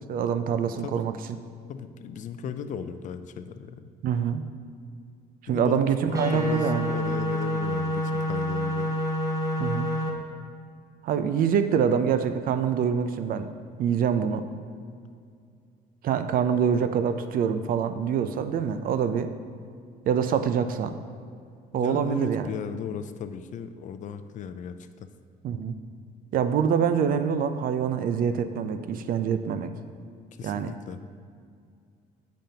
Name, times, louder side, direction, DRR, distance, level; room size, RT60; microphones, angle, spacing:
voice 1, 0.1-1.2 4.0-4.4 5.4-6.9 9.6-9.9 11.0-13.5 13.8-14.5 16.0-19.3 20.1-20.9 21.7-22.5 25.4-25.8 26.3-29.7 30.4-30.7, right 7 dB, 60° right, 10 dB, 0.4 m, -25 dB
voice 2, 1.7-3.9 5.5-5.8 6.1-8.9 21.7-25.1 30.4-31.0, left 7 dB, 50° left, 10 dB, 0.4 m, -36 dB
sound 1, 6.1-10.1, equal, 20° right, 0.8 m, -27 dB
8.9 x 5.2 x 2.8 m, 2.3 s
cardioid pair, 110°, 17 cm